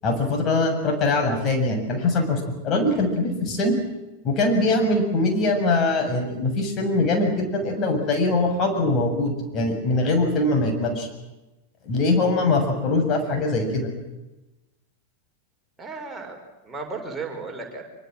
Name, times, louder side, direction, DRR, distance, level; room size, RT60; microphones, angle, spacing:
voice 1, 0.0-3.8 4.2-11.1 11.8-13.9, left 2 dB, 35° left, 4 dB, 7.3 m, -22 dB
voice 2, 15.8-16.4 16.6-17.8, right 4 dB, 10° right, 1 dB, 5.9 m, -34 dB
25.5 x 24.5 x 7.7 m, 1.0 s
figure-of-eight pair, 90°, 0 cm